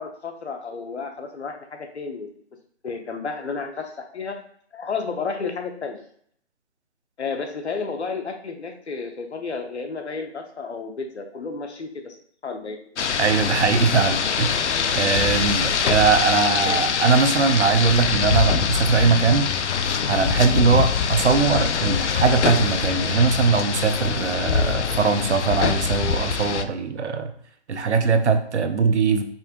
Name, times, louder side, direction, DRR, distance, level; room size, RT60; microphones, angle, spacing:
voice 1, 0.0-2.4 2.8-4.4 4.7-6.0 7.2-12.2 12.4-12.8, left 4 dB, 70° left, 4 dB, 1.0 m, -32 dB
Rain, 13.0-26.6, left 6 dB, 85° left, 0.5 m, -23 dB
voice 2, 13.2-19.5 20.1-27.3 27.7-29.2, right 5 dB, 80° right, 8 dB, 0.7 m, -21 dB
5.5 x 2.7 x 3.6 m, 0.62 s
hypercardioid pair, 175°, 34 cm